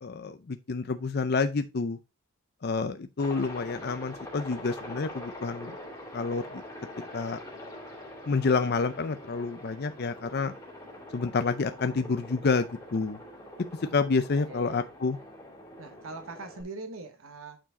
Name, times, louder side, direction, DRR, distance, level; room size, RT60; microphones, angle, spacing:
voice 1, 0.0-2.0 2.6-5.8 6.1-6.6 7.1-7.4 8.3-10.5 11.1-13.2 13.9-15.2, left 4 dB, 50° left, 0.5 m, -28 dB
Aircraft, 3.2-16.6, left 1 dB, 15° left, 2.7 m, -44 dB
voice 2, 14.5-14.9 15.8-17.6, right 3 dB, 85° right, 1.3 m, -42 dB
8.8 x 4.8 x 3.7 m
head